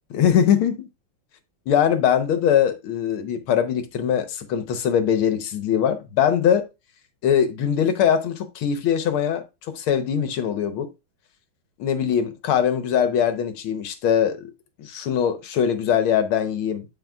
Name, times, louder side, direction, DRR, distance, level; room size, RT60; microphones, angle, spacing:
voice 1, 0.1-0.9 1.7-6.7 7.2-10.9 11.8-14.5 14.8-16.9, left 8 dB, 80° left, 1.8 m, -22 dB
11.5 x 4.4 x 2.3 m
omnidirectional pair, 2.3 m